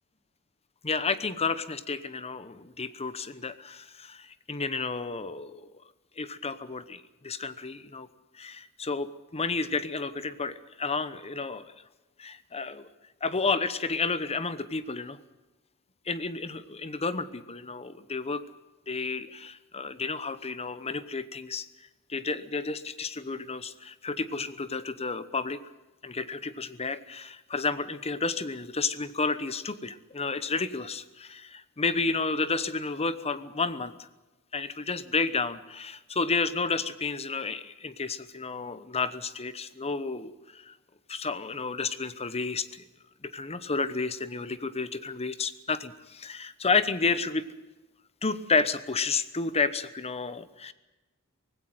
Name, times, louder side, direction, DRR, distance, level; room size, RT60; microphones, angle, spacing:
voice 1, 0.8-5.7 6.2-8.1 8.3-11.7 12.2-12.9 13.2-15.2 16.1-18.4 18.9-21.7 22.1-25.6 26.0-34.1 34.5-40.7 41.1-42.8 43.2-47.4 48.2-50.7, left 4 dB, 30° left, 14 dB, 0.9 m, -31 dB
19.0 x 16.5 x 9.4 m, 1.1 s
head